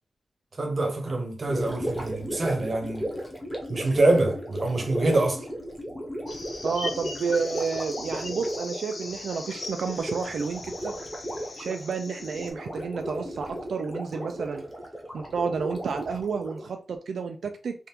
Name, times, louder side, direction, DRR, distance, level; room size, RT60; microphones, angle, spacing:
voice 1, 0.6-3.1 3.7-5.5, right 2 dB, 35° right, 0.8 m, -25 dB
Gurgling, 1.4-16.7, equal, ahead, 0.8 m, -35 dB
sound 1, 6.3-12.5, left 3 dB, 55° left, 0.6 m, -40 dB
voice 2, 6.6-10.9 11.6-14.6 15.1-17.8, right 5 dB, 80° right, 0.3 m, -30 dB
3.4 x 2.4 x 2.8 m
wide cardioid pair, 145°, 0 cm